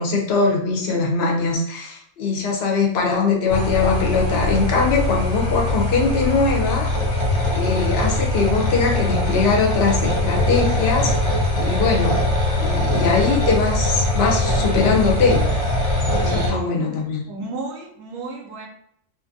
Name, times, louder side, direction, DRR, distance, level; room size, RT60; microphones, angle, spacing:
voice 1, 0.0-6.9 7.5-11.3 11.6-12.2 12.6-15.5 16.2-17.2, left 4 dB, 60° left, 0 dB, 0.8 m, -21 dB
sound 1, 3.5-16.5, left 1 dB, 40° left, 0.5 m, -21 dB
voice 2, 16.2-16.9 17.3-18.7, right 3 dB, 90° right, 1 dB, 1.0 m, -32 dB
2.5 x 2.5 x 2.5 m, 0.71 s
omnidirectional pair, 1.3 m